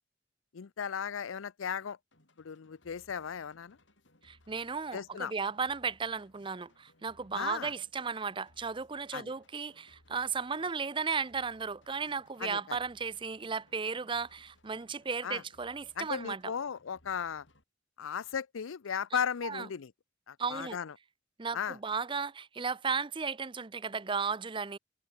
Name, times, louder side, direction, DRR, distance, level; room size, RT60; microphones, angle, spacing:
voice 1, 0.5-2.0 2.4-3.8 4.9-5.3 7.3-7.7 9.1-9.3 12.4-12.8 15.2-15.4 16.0-17.5 18.0-19.9 20.3-20.9 21.5-21.8, left 7 dB, 85° left, 0.5 m, -36 dB
sound 1, 2.1-17.6, left 1 dB, 65° left, 7.3 m, -66 dB
voice 2, 4.2-16.5 19.4-19.7 20.4-20.8 21.4-24.8, right 5 dB, 25° right, 0.6 m, -35 dB
head